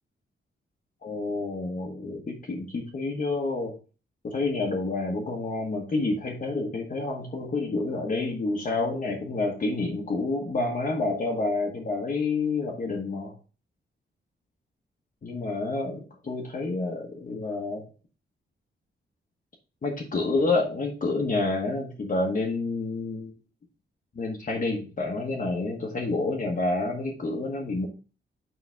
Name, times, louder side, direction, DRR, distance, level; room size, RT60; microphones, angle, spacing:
voice 1, 1.0-3.8 4.2-13.3 15.2-17.9 19.8-23.3 24.1-27.9, left 3 dB, 40° left, -1 dB, 1.2 m, -29 dB
7.5 x 5.1 x 3.4 m, 0.34 s
wide cardioid pair, 130°, 20 cm